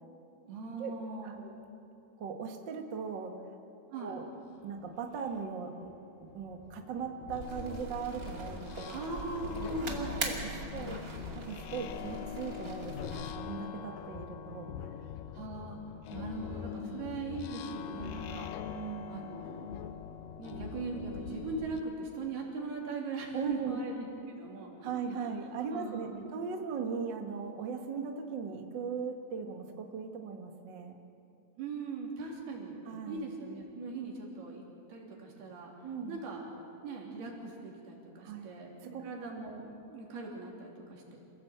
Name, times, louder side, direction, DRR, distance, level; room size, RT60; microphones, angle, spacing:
voice 1, 0.5-1.4 3.9-4.2 8.9-10.2 15.3-15.8 16.1-18.5 19.1-19.7 20.4-25.3 25.7-26.3 31.6-32.8 33.1-34.6 34.9-35.7 36.1-36.5 36.8-41.2, right 3 dB, 85° right, -1 dB, 5.2 m, -40 dB
voice 2, 2.2-3.6 4.0-4.2 4.6-5.9 6.2-8.9 9.9-11.0 11.3-14.9 16.8-17.0 18.7-19.2 23.3-23.8 24.8-31.0 32.9-33.3 35.8-36.2 38.2-38.5 38.8-39.0, right 5 dB, 55° right, 4 dB, 1.3 m, -39 dB
sound 1, 4.8-4.9 5.3-21.8, left 9 dB, 75° left, 2.3 m, -43 dB
sound 2, 7.4-13.3, right 3 dB, 30° right, 2.1 m, -42 dB
27.0 x 17.0 x 8.0 m, 2.7 s
omnidirectional pair, 4.4 m